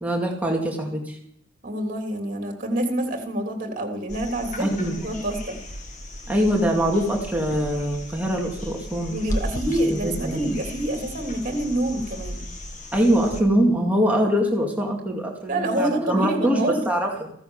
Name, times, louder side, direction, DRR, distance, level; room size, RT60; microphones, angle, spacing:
voice 1, 0.0-1.2 4.6-5.2 6.3-9.2 9.9-10.5 12.9-17.3, equal, 10° right, -1 dB, 2.2 m, -23 dB
voice 2, 1.6-5.6 9.1-12.4 15.5-16.8, right 1 dB, 40° right, 3 dB, 3.1 m, -27 dB
sound 1, 4.1-13.4 15.5-15.6, equal, 40° left, 1.9 m, -35 dB
15.5 x 10.5 x 7.2 m, 0.70 s
head